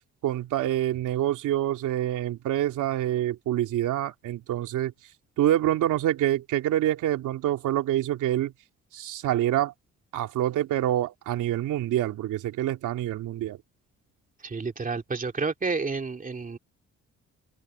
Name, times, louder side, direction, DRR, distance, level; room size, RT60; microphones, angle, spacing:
voice 1, 0.2-4.9 5.4-8.5 8.9-9.7 10.1-13.6, right 13 dB, 85° right, 2.9 m, -26 dB
voice 2, 14.4-16.6, right 4 dB, 25° right, 2.5 m, -30 dB
cardioid pair, 90°, 30 cm